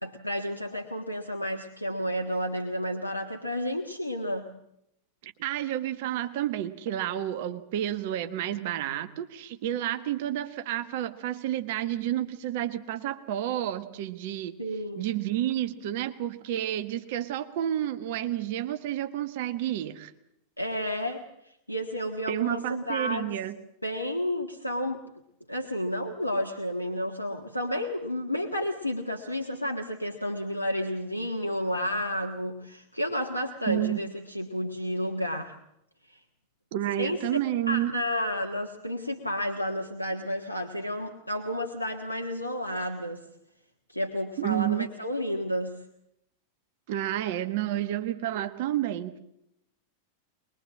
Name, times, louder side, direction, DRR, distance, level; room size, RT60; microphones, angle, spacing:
voice 1, 0.0-4.5 14.6-15.1 20.6-23.3 23.8-25.0 25.5-35.6 36.1-36.2 37.0-37.2 37.7-43.3 43.9-45.7, equal, 85° left, 3 dB, 1.5 m, -31 dB
voice 2, 5.2-14.5 15.0-20.1 22.3-23.5 33.7-34.0 36.7-37.9 44.4-44.9 46.9-49.2, right 12 dB, 50° right, 10 dB, 1.4 m, -30 dB
23.5 x 21.5 x 7.5 m, 0.78 s
figure-of-eight pair, 90°, 0 cm